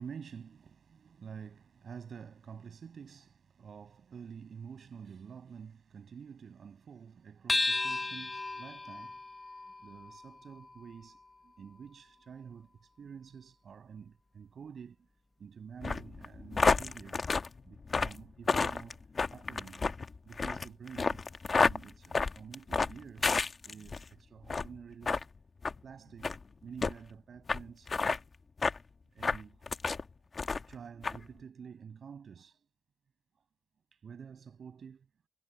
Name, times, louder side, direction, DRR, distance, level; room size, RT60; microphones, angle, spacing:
voice 1, 0.0-9.2 9.8-15.1 15.4-17.2 17.6-19.0 19.3-19.9 20.2-21.2 21.5-23.4 23.6-25.3 25.8-26.4 26.6-27.9 29.1-29.7 30.7-32.7 33.9-35.1, right 6 dB, 60° right, 7.1 m, -49 dB
sound 1, 7.5-12.3, left 2 dB, 20° left, 0.9 m, -36 dB
sound 2, 15.8-24.0 24.4-24.7 25.0-25.2 25.6-25.8 26.2-26.4 26.8-26.9 27.5-27.6 27.9-28.2 28.6-28.8 29.2-30.0 30.4-30.7 31.0-31.2, left 4 dB, 40° left, 1.1 m, -30 dB
wide cardioid pair, 115°, 0 cm